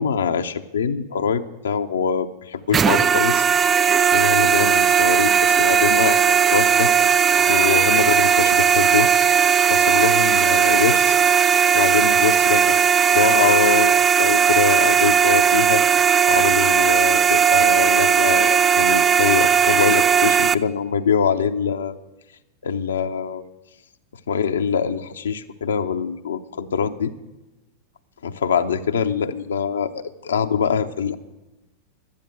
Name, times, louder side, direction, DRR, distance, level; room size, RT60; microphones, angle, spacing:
voice 1, 0.0-3.4 4.1-6.9 7.5-9.1 9.7-11.2 11.7-12.8 13.1-15.8 16.3-22.0 22.6-23.4 24.3-27.1 28.2-31.1, left 6 dB, 65° left, 8 dB, 0.6 m, -23 dB
sound 1, 2.7-20.5, right 7 dB, 20° right, 0.4 m, -17 dB
12.0 x 9.6 x 7.8 m, 1.0 s
figure-of-eight pair, 90°, 0 cm